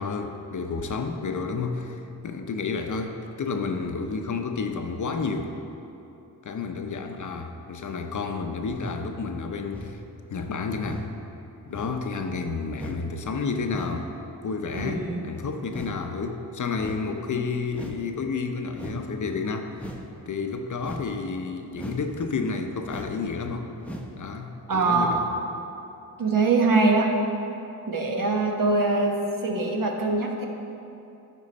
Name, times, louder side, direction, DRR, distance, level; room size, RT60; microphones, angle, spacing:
voice 1, 0.0-5.5 6.4-10.0 10.3-11.1 11.7-14.1 14.4-19.9 20.3-23.7 24.2-25.2, left 4 dB, 50° left, 5 dB, 0.7 m, -30 dB
sound 1, 8.7-9.0 9.7-10.0 10.8-11.1 11.7-12.0 12.7-13.0 13.7-14.0 14.7-15.0 15.7-16.0 16.8-17.0 17.7-18.0 18.7-19.0 19.7-20.1 20.8-21.1 21.7-22.1 22.8-23.2 23.8-24.1 24.7-24.8, equal, 5° left, 0.8 m, -38 dB
voice 2, 14.7-15.2 24.7-25.2 26.2-27.1 27.9-30.5, right 3 dB, 55° right, 1 dB, 1.1 m, -23 dB
11.5 x 4.6 x 4.2 m, 2.9 s
cardioid pair, 70°, 39 cm